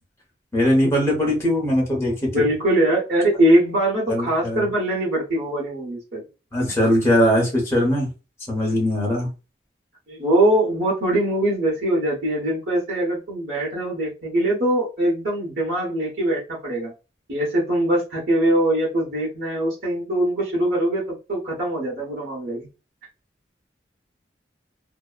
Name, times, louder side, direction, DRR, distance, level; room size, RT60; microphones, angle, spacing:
voice 1, 0.5-2.5 4.1-4.7 6.5-8.1 8.5-9.3, equal, 15° left, -3 dB, 1.0 m, -20 dB
voice 2, 2.3-6.2 10.1-16.9 17.3-22.7, right 1 dB, 70° right, -6 dB, 1.0 m, -22 dB
2.7 x 2.0 x 2.3 m, 0.30 s
head